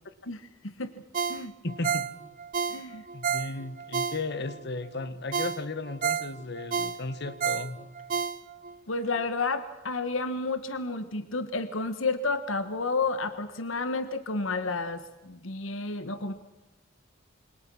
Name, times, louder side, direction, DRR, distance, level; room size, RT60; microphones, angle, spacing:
voice 1, 0.3-1.0 1.3-1.5 2.7-3.0 8.9-16.3, left 3 dB, 80° left, 11 dB, 1.4 m, -31 dB
Ringtone, 1.1-4.6 5.0-5.1 5.3-8.8 9.2-9.3, right 6 dB, 45° right, 0.8 m, -31 dB
voice 2, 1.6-2.1 3.1-7.9, left 3 dB, 60° left, 13 dB, 1.7 m, -35 dB
27.5 x 25.0 x 6.2 m, 1.0 s
head